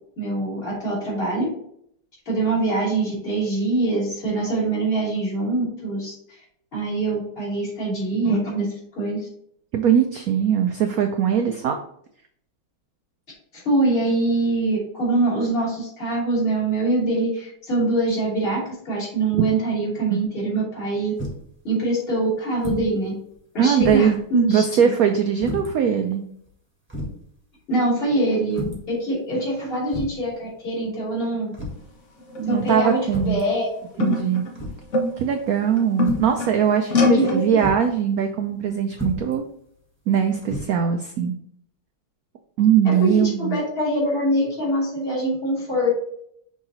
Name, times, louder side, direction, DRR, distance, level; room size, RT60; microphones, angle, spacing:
voice 1, 0.2-1.5 2.2-6.4 6.7-9.3 13.5-21.1 21.6-23.1 23.5-24.9 27.7-31.5 32.4-33.7 33.9-34.1 37.1-37.6 42.8-46.0, right 2 dB, 30° left, -6 dB, 3.0 m, -24 dB
voice 2, 9.7-11.8 19.3-19.4 20.1-20.2 23.6-24.2 24.5-26.2 32.5-33.4 34.0-34.4 35.2-39.4 40.1-41.3 42.6-43.6, right 8 dB, 90° right, 6 dB, 0.7 m, -21 dB
sound 1, 21.2-21.5 22.6-22.9 23.3-23.4 23.8-24.2 25.4-25.7 26.5-26.6 26.9-27.2 28.5-28.9 29.9-30.3 31.5-31.9 33.1-33.5 34.6-34.9 36.0-36.4 37.6-37.9 38.9-39.3 40.4-40.6, left 1 dB, 5° right, 1.3 m, -31 dB
sound 2, 32.2-32.6 33.3-33.4 34.0-35.4 35.7-36.6 36.9-37.4, left 3 dB, 45° left, 1.1 m, -22 dB
6.2 x 3.8 x 4.1 m, 0.67 s
omnidirectional pair, 2.2 m